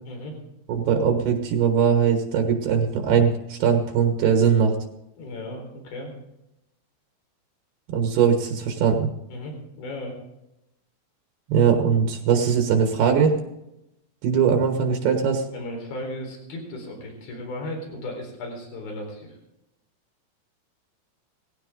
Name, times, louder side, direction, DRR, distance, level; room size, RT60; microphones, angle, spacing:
voice 1, 0.7-4.7 7.9-9.1 11.5-13.4 14.2-15.4, right 7 dB, 70° right, 4 dB, 3.3 m, -20 dB
voice 2, 5.2-6.1 9.3-10.2 15.5-19.4, left 1 dB, 60° left, 2 dB, 5.9 m, -35 dB
19.0 x 16.0 x 3.8 m, 0.87 s
omnidirectional pair, 4.8 m